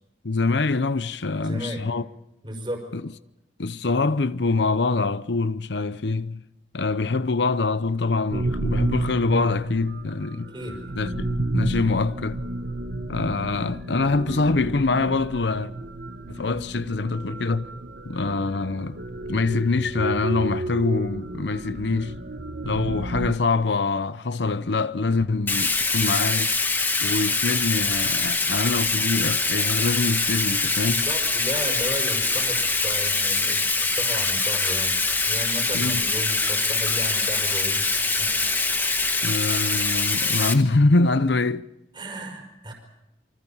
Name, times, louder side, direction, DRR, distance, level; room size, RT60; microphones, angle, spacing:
voice 1, 0.2-2.1 2.9-3.1 3.6-6.4 6.7-10.5 11.0-12.4 13.1-15.7 16.3-17.7 18.1-19.0 19.3-22.2 22.7-26.5 27.0-31.1 35.7-36.0 39.2-41.7, left 3 dB, 85° left, 0.8 m, -24 dB
voice 2, 1.3-1.9 2.4-2.8 10.4-10.8 30.8-38.3 38.7-39.2 41.9-42.7, equal, 25° right, 5.1 m, -35 dB
sound 1, 8.3-23.3, right 1 dB, 70° right, 1.2 m, -31 dB
Bathtub (filling or washing), 25.5-40.5, left 3 dB, 10° left, 1.4 m, -24 dB
27.5 x 25.0 x 5.7 m
head